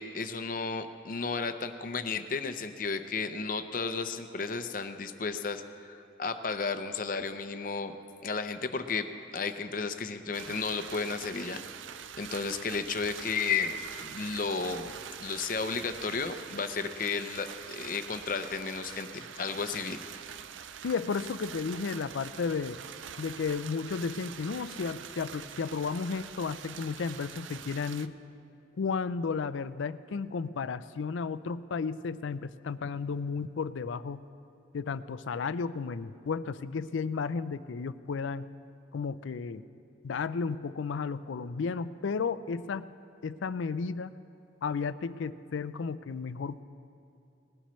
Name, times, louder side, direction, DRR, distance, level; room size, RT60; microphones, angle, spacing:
voice 1, 0.0-8.0 8.2-11.6 12.2-14.9 15.2-20.0, left 4 dB, 45° left, 9 dB, 0.6 m, -33 dB
sound 1, 10.3-28.1, right 8 dB, 90° right, 0.5 m, -44 dB
voice 2, 20.8-22.8 23.2-28.2 28.8-34.2 34.7-38.5 38.9-39.6 40.0-42.9 43.2-44.1 44.6-46.6, left 5 dB, 85° left, 15 dB, 0.4 m, -33 dB
19.5 x 15.5 x 3.1 m, 2.7 s
head